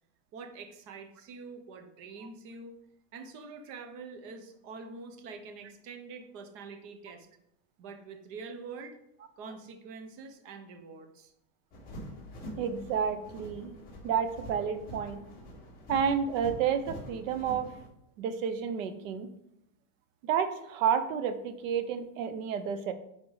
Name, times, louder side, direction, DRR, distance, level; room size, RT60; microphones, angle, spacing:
voice 1, 0.3-2.8 3.1-7.3 7.8-9.0 9.4-11.3, right 4 dB, 30° right, 6 dB, 0.7 m, -45 dB
sound 1, 11.7-17.9, equal, 20° left, 2.3 m, -45 dB
voice 2, 12.6-13.7 14.0-15.2 15.9-17.7 18.2-19.3 20.2-22.9, right 7 dB, 60° right, 10 dB, 0.9 m, -30 dB
9.8 x 3.7 x 4.0 m, 0.79 s
supercardioid pair, 170°, 45 cm